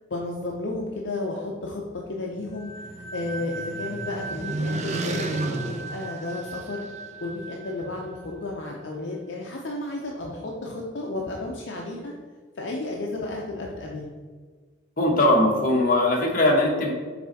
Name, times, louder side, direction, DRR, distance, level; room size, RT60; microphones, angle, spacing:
voice 1, 0.1-6.8 7.2-12.1 12.6-14.2, left 2 dB, 65° left, -1 dB, 0.6 m, -33 dB
sound 1, 2.2-7.0, right 2 dB, 35° right, 0.5 m, -33 dB
sound 2, 2.6-9.0, right 4 dB, 15° left, 0.6 m, -40 dB
voice 2, 15.0-16.9, left 1 dB, 45° left, -1 dB, 1.2 m, -20 dB
6.0 x 4.2 x 4.0 m, 1.5 s
head